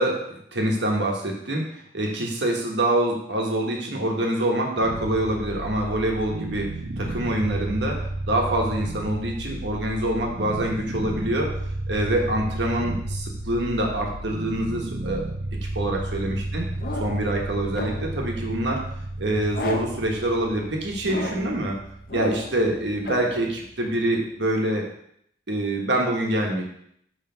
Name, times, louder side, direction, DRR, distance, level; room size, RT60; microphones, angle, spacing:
voice 1, 0.0-11.5 11.9-15.2 15.7-16.7 17.0-18.8 19.2-21.8 22.1-24.8 25.5-26.6, right 1 dB, 85° right, 0 dB, 1.2 m, -25 dB
sound 1, 4.8-23.8, right 1 dB, 60° right, 0.5 m, -33 dB
sound 2, 16.8-17.3 17.7-18.2 19.5-20.1 21.0-21.6 22.1-22.6 23.0-23.4, left 2 dB, 50° left, 0.7 m, -33 dB
5.4 x 3.4 x 5.6 m, 0.71 s
head